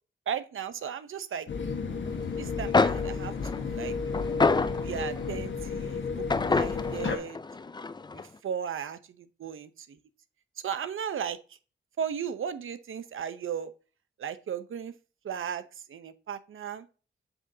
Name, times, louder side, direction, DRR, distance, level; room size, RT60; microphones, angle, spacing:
voice 1, 0.3-1.5 2.4-3.9 4.8-7.4 8.1-9.0 9.4-10.0 10.6-11.4 12.0-13.7 14.2-14.9 15.2-15.6 15.9-16.9, right 8 dB, 85° right, 12 dB, 0.7 m, -35 dB
sound 1, 1.5-7.2, left 5 dB, 70° left, 1.3 m, -32 dB
sound 2, 2.4-2.5 2.7-5.3 6.3-8.2, left 4 dB, 20° left, 0.4 m, -27 dB
7.9 x 6.2 x 2.7 m, 0.35 s
wide cardioid pair, 85°, 20 cm